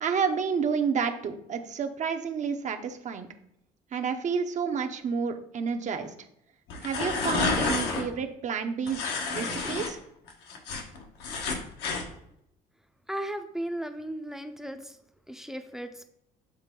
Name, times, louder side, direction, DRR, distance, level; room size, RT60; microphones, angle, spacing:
voice 1, 0.0-3.3 3.9-6.1 6.8-10.0, right 6 dB, 45° right, 6 dB, 0.7 m, -30 dB
sound 1, 6.7-8.0 8.9-9.9 10.3-12.1, left 4 dB, 80° left, 1.2 m, -29 dB
voice 2, 13.1-15.0 15.3-16.0, right 1 dB, 5° right, 8 dB, 0.5 m, -36 dB
7.6 x 3.6 x 3.7 m, 0.76 s
cardioid pair, 110°, 17 cm